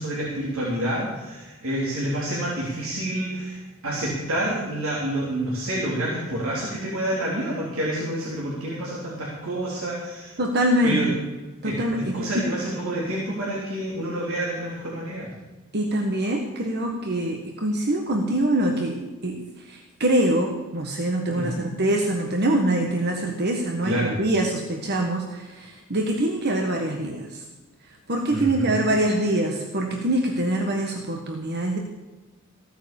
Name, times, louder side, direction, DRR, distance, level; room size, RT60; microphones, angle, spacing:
voice 1, 0.0-10.3 10.8-11.1 11.6-15.3 21.3-21.6 23.8-24.2 28.3-28.7, right 1 dB, 70° right, -6 dB, 3.5 m, -28 dB
voice 2, 10.4-11.2 11.6-12.4 15.7-27.4 28.1-31.8, right 1 dB, 50° right, 3 dB, 1.5 m, -24 dB
15.5 x 9.2 x 7.1 m, 1.1 s
head